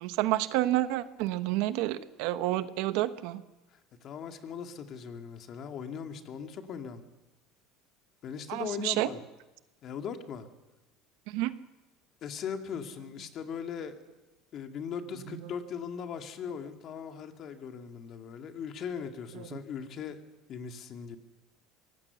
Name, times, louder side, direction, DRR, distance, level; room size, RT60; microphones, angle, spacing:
voice 1, 0.0-3.4 8.5-9.1 11.3-11.5 19.4-19.5, right 15 dB, 70° right, 12 dB, 1.1 m, -29 dB
voice 2, 4.0-7.0 8.2-9.2 9.8-10.5 12.2-14.0 14.5-20.2 20.5-21.2, left 7 dB, 45° left, 5 dB, 2.2 m, -39 dB
23.5 x 18.5 x 7.0 m, 1.1 s
supercardioid pair, 125°, 0 cm